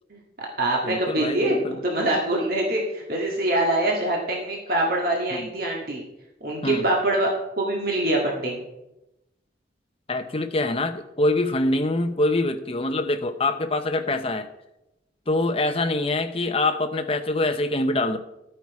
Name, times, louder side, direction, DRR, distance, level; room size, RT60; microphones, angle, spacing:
voice 1, 0.1-6.0 6.4-7.3 7.6-8.6, right 1 dB, 50° right, -2 dB, 1.9 m, -24 dB
voice 2, 0.8-1.8 5.3-5.5 6.6-6.8 10.1-14.5 15.3-18.2, left 2 dB, 30° left, 7 dB, 0.8 m, -24 dB
12.5 x 9.1 x 4.7 m, 0.93 s
head